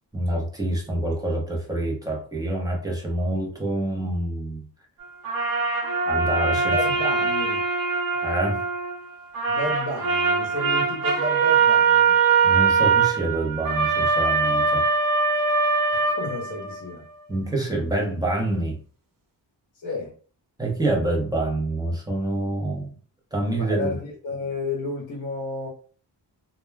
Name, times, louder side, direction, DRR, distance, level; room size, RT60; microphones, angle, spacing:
voice 1, 0.1-4.6 6.1-6.8 8.2-8.6 12.4-14.9 17.3-18.8 20.6-22.9 23.3-24.0, right 1 dB, 10° right, 0.7 m, -26 dB
sound 1, 5.2-9.0 9.3-16.9, right 5 dB, 50° right, 0.7 m, -22 dB
voice 2, 6.5-7.6 9.5-12.2 15.9-17.1 19.8-20.1 23.6-25.7, left 2 dB, 45° left, 0.8 m, -32 dB
2.2 x 2.1 x 3.2 m
wide cardioid pair, 135°, 45 cm